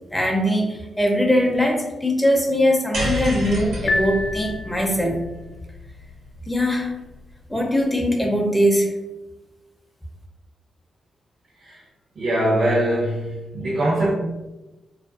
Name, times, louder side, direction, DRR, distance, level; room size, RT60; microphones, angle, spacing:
voice 1, 0.1-5.2 6.5-6.9 7.5-8.9, equal, 10° left, 0 dB, 0.5 m, -21 dB
sound 1, 2.9-7.3, left 1 dB, 85° right, 1.1 m, -30 dB
Piano, 3.9-5.2, left 2 dB, 65° left, 0.5 m, -27 dB
voice 2, 12.2-14.1, right 1 dB, 60° right, -7 dB, 0.6 m, -22 dB
2.4 x 2.2 x 2.3 m, 1.0 s
cardioid pair, 65°, 0 cm